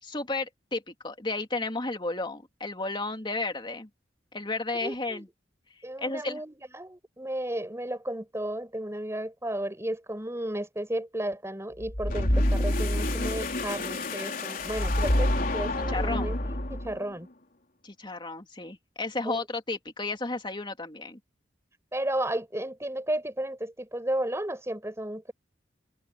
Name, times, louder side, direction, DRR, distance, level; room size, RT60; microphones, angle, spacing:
voice 1, 0.0-3.9 4.3-5.3 6.0-6.4 15.9-16.4 17.8-21.2, left 3 dB, 25° left, 3.0 m, -33 dB
voice 2, 4.8-5.3 5.8-17.3 19.2-19.4 21.9-25.3, right 1 dB, 15° right, 6.5 m, -33 dB
sound 1, 11.8-17.0, left 1 dB, 50° left, 3.8 m, -27 dB
open air
head